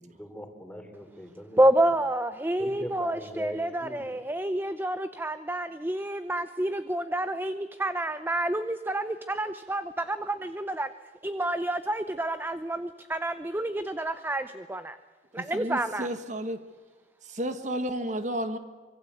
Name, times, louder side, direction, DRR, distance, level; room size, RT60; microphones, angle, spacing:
voice 1, 0.0-2.2 2.6-4.1, equal, 5° left, 3.4 m, -41 dB
voice 2, 1.6-10.9 11.2-15.0 15.3-16.1, right 1 dB, 10° right, 0.7 m, -28 dB
voice 3, 15.3-16.7 17.2-18.6, right 1 dB, 45° right, 1.6 m, -32 dB
25.0 x 23.5 x 8.3 m
head